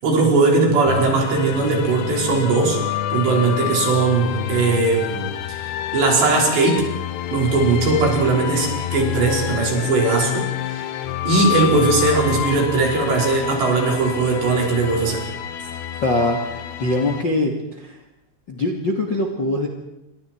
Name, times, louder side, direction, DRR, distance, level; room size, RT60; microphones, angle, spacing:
voice 1, 0.0-2.8 3.1-6.9 7.3-10.8 11.3-15.2, right 3 dB, 65° right, -1 dB, 7.4 m, -19 dB
sound 1, 0.9-17.2, left 12 dB, 75° left, 3.0 m, -28 dB
voice 2, 16.0-17.5 17.8-18.0 18.5-19.7, left 2 dB, 35° left, 3 dB, 2.0 m, -22 dB
29.0 x 25.5 x 4.7 m, 0.90 s
omnidirectional pair, 5.3 m